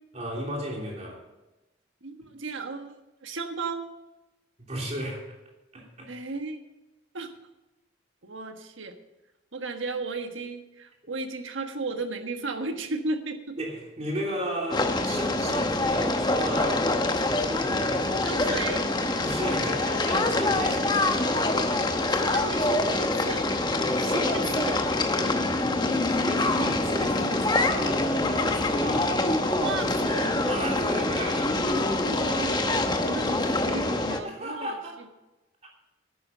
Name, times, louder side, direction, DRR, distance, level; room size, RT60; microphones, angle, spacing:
voice 1, 0.1-1.2 4.6-5.3 5.7-6.1 13.6-18.3 19.2-21.0 26.1-29.4 30.1-31.8 34.1-35.0, equal, 35° right, -1 dB, 3.1 m, -35 dB
voice 2, 2.0-3.8 6.1-6.6 7.1-7.3 8.2-8.9 9.5-13.6 18.2-18.9 22.1-23.5 24.0-24.8 29.5-30.4 32.0-34.8, right 3 dB, 75° right, 6 dB, 1.4 m, -34 dB
sound 1, 14.7-34.2, left 2 dB, 20° left, 0.9 m, -25 dB
11.0 x 9.6 x 5.6 m, 1.0 s
head